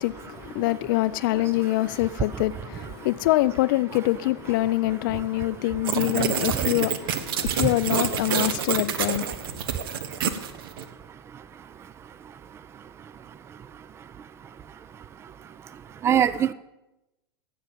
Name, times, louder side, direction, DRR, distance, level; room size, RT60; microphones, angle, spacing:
voice 1, 0.0-9.3, left 17 dB, 50° left, 0.4 m, -25 dB
voice 2, 1.3-2.0 2.3-2.4 2.8-3.1 5.1-6.7 7.3-7.8 8.4-8.5 9.4-16.5, right 9 dB, 20° right, 0.4 m, -33 dB
sound 1, 5.8-10.8, right 8 dB, 60° right, 1.0 m, -27 dB
16.0 x 6.4 x 7.2 m
figure-of-eight pair, 90°, 14 cm